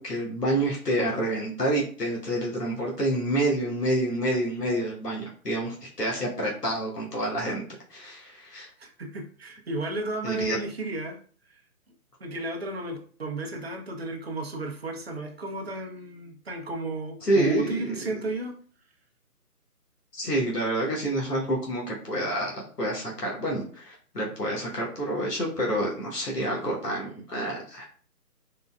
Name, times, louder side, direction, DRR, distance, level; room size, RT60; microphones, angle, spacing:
voice 1, 0.0-7.6 7.9-8.7 10.2-10.6 17.2-17.8 20.1-27.8, right 1 dB, 90° left, -3 dB, 1.1 m, -28 dB
voice 2, 8.8-11.2 12.2-18.6, right 2 dB, 40° right, 1 dB, 0.6 m, -33 dB
3.8 x 2.1 x 2.2 m, 0.43 s
figure-of-eight pair, 145°, 46 cm